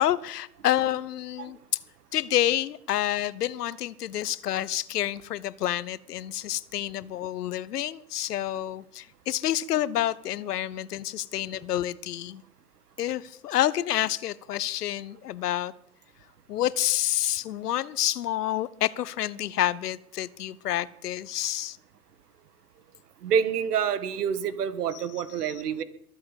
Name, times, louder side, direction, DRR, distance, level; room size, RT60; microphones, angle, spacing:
voice 1, 0.0-1.6 2.1-12.4 13.0-15.7 16.5-21.8 24.9-25.0 25.4-25.5, left 12 dB, 70° left, 19 dB, 0.9 m, -28 dB
voice 2, 23.2-25.8, right 7 dB, 70° right, 15 dB, 1.7 m, -27 dB
22.5 x 7.9 x 7.3 m, 0.74 s
hypercardioid pair, 105°, 48 cm